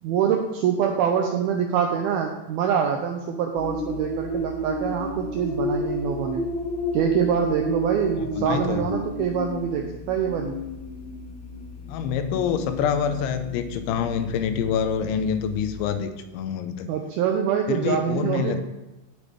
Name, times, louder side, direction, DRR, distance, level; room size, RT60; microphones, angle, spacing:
voice 1, 0.0-6.5 6.9-10.6 16.9-18.6, right 8 dB, 80° right, 3 dB, 2.2 m, -25 dB
sound 1, 3.6-16.0, left 1 dB, 65° left, 3.4 m, -32 dB
voice 2, 8.2-8.9 11.9-16.9 17.7-18.6, left 7 dB, 85° left, 9 dB, 3.1 m, -26 dB
16.5 x 6.8 x 3.6 m, 1.0 s
omnidirectional pair, 5.3 m